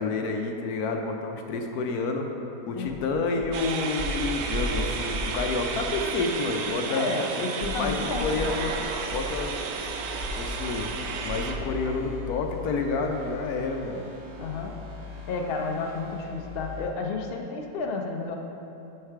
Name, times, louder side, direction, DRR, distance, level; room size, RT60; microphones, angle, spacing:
voice 1, 0.0-2.3 2.7-7.1 7.8-8.7 9.1-9.5 10.4-10.9 11.2-14.0, left 4 dB, 70° left, 3 dB, 1.1 m, -29 dB
sound 1, 2.8-3.0 3.4-3.6 4.0-5.4 5.7-6.0 6.4-6.5 7.6-11.6 11.9-12.1 12.5-12.6, equal, 45° right, 2.4 m, -35 dB
sound 2, 3.5-12.1, right 5 dB, 90° right, 1.3 m, -33 dB
voice 2, 6.9-8.5 14.4-14.7 15.3-18.3, left 4 dB, 55° left, 2 dB, 0.7 m, -31 dB
sound 3, 9.7-16.9, left 5 dB, 25° right, 0.8 m, -41 dB
9.9 x 4.7 x 4.6 m, 2.9 s
omnidirectional pair, 1.8 m